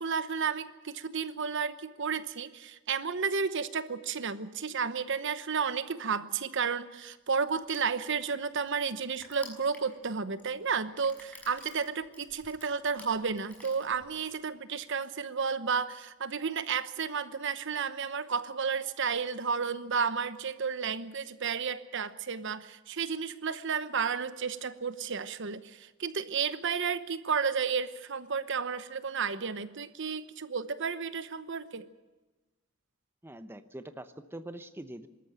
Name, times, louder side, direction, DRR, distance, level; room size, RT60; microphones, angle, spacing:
voice 1, 0.0-31.9, right 6 dB, 60° right, 13 dB, 1.0 m, -32 dB
Crushing, 7.6-14.4, left 1 dB, 5° left, 6.2 m, -53 dB
voice 2, 33.2-35.1, right 1 dB, 10° right, 10 dB, 0.9 m, -44 dB
24.5 x 13.5 x 8.9 m, 1.2 s
head